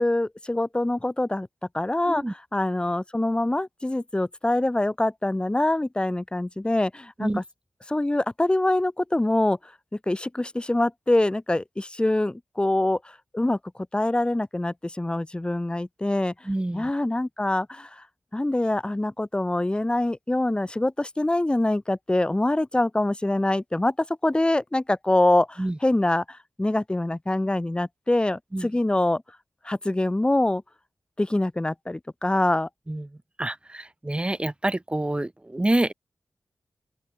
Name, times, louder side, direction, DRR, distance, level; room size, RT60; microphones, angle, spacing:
voice 1, 0.0-1.5 1.7-7.4 7.9-9.7 10.1-13.6 13.9-16.3 16.7-18.0 18.3-29.2 29.6-30.6 31.2-32.7, left 1 dB, 20° left, 1.0 m, -24 dB
voice 2, 16.4-16.9 25.6-25.8 28.5-28.7 32.9-33.1 33.4-35.9, right 1 dB, 20° right, 1.6 m, -27 dB
open air
cardioid pair, 45°, 5 cm